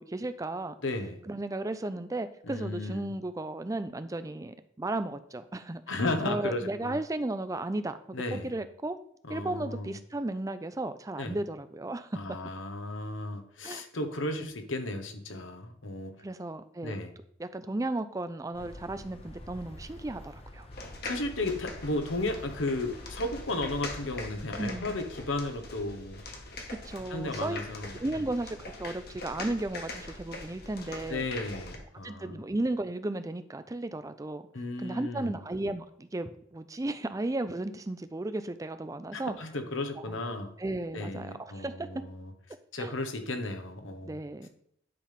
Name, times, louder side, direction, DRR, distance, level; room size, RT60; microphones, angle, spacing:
voice 1, 0.0-0.7 1.3-5.8 6.2-9.0 9.3-12.2 13.6-13.8 14.4-14.5 16.2-17.0 17.4-20.7 24.6-25.0 26.7-27.6 27.9-31.3 32.0-34.4 34.8-39.4 40.0-40.2 40.6-42.0 42.8-42.9 44.0-44.5, right 2 dB, 15° right, 11 dB, 0.5 m, -34 dB
voice 2, 0.8-1.2 2.4-3.1 5.9-7.0 8.1-8.5 9.2-9.9 11.2-11.4 12.1-16.1 16.8-17.1 21.0-26.2 27.1-28.2 31.1-32.4 34.5-35.4 39.1-40.5 40.9-42.3 42.7-44.2, left 2 dB, 85° left, 6 dB, 1.2 m, -34 dB
sound 1, 18.5-24.4, left 1 dB, 30° left, 0.8 m, -47 dB
sound 2, 20.7-31.8, left 2 dB, 55° left, 1.5 m, -42 dB
10.0 x 3.5 x 5.7 m, 0.69 s
head